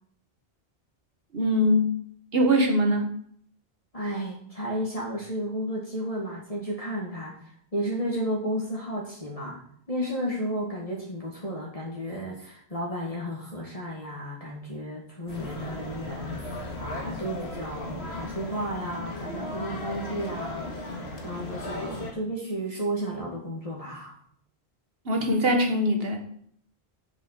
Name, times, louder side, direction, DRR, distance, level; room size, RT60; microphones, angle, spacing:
voice 1, 1.3-1.9 2.3-3.1 25.1-26.2, equal, 70° right, 3 dB, 1.9 m, -22 dB
voice 2, 3.9-7.4 7.7-9.6 9.9-20.8 21.2-24.1, equal, 35° left, -3 dB, 1.9 m, -33 dB
sound 1, 15.3-22.1, left 2 dB, 90° left, 2.0 m, -36 dB
7.2 x 7.2 x 6.6 m, 0.64 s
omnidirectional pair, 1.1 m